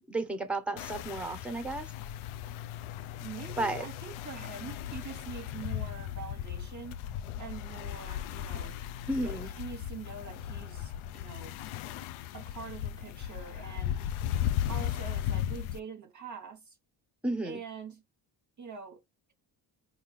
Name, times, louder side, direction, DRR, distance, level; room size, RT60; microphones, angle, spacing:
voice 1, 0.1-1.9 3.6-3.8 9.1-9.5 17.2-17.6, right 2 dB, ahead, 1.1 m, -32 dB
sound 1, 0.8-15.8, left 11 dB, 85° left, 0.5 m, -36 dB
voice 2, 3.2-7.0 7.4-8.8 9.2-11.6 12.3-14.0 14.7-16.8 17.4-18.0 18.6-19.0, right 6 dB, 40° right, 1.0 m, -44 dB
3.7 x 2.7 x 3.1 m
cardioid pair, 75°, 47 cm